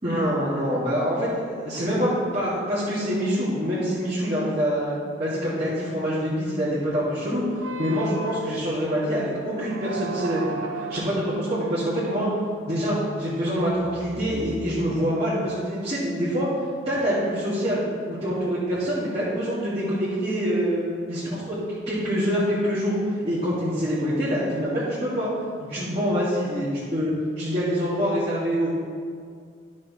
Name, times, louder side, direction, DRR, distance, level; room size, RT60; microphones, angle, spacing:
voice 1, 0.0-10.5 10.7-12.3 12.7-16.5 16.8-17.8 18.1-20.8 21.1-25.3 25.6-28.7, equal, 30° right, -12 dB, 2.1 m, -25 dB
sound 1, 7.6-15.3, right 4 dB, 85° right, 0.8 m, -37 dB
12.5 x 6.3 x 3.1 m, 2.2 s
head